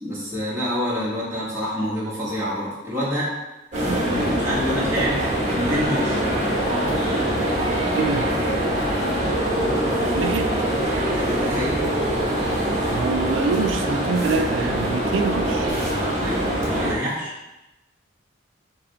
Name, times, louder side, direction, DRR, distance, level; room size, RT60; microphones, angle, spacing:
voice 1, 0.0-3.3 4.1-6.2 10.4-10.5 11.2-11.8 16.2-17.3, equal, 15° right, -8 dB, 1.3 m, -27 dB
sound 1, 3.7-16.9, right 1 dB, 40° right, 1.1 m, -23 dB
voice 2, 7.9-8.3 10.1-10.7 12.9-15.7, right 4 dB, 80° right, 7 dB, 0.4 m, -25 dB
5.7 x 2.3 x 3.8 m, 1.0 s
head